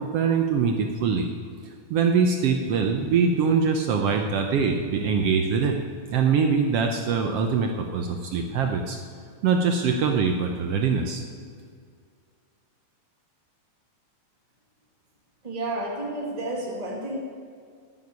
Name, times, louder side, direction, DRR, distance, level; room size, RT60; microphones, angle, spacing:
voice 1, 0.0-1.3 1.9-5.8 6.1-9.0 9.4-11.2, right 5 dB, 70° right, 4 dB, 1.5 m, -23 dB
voice 2, 15.4-17.2, right 1 dB, 30° right, -2 dB, 0.6 m, -31 dB
9.6 x 9.1 x 9.6 m, 2.1 s
omnidirectional pair, 3.5 m